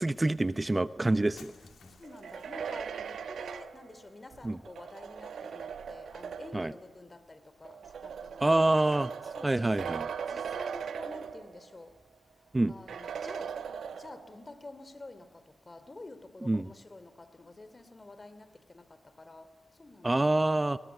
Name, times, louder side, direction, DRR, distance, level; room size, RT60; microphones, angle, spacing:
voice 1, 0.0-1.5 4.4-4.6 6.5-6.7 8.4-9.1 9.4-10.0 12.5-12.7 16.5-16.7 20.0-20.8, right 2 dB, 25° right, 0.8 m, -26 dB
Shatter, 1.3-2.7, left 6 dB, 85° left, 2.5 m, -55 dB
voice 2, 1.6-8.7 9.2-9.8 10.3-12.0 12.7-13.7 13.9-20.3, left 2 dB, 40° left, 3.0 m, -49 dB
sound 1, 2.0-6.7 7.6-11.8 12.1-12.2 12.9-14.4, right 7 dB, 85° right, 1.1 m, -39 dB
28.5 x 21.0 x 9.3 m
cardioid pair, 50°, 0 cm